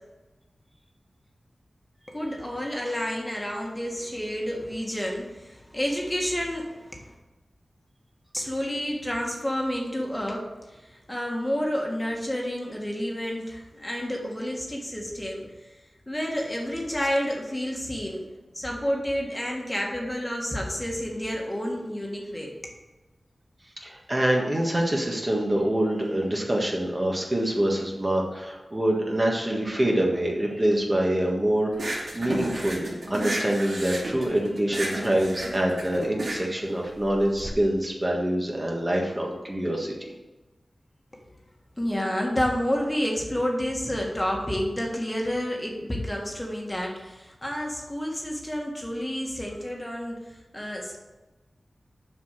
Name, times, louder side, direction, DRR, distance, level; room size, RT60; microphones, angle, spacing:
voice 1, 2.1-7.1 8.3-15.7 16.1-18.2 18.5-22.5 41.8-51.0, equal, 15° left, -1 dB, 1.7 m, -30 dB
voice 2, 23.8-39.9, right 1 dB, 25° right, -1 dB, 1.6 m, -25 dB
sound 1, 31.7-37.5, right 1 dB, 75° right, 2.3 m, -32 dB
7.1 x 6.0 x 6.6 m, 1.1 s
wide cardioid pair, 100°, 0 cm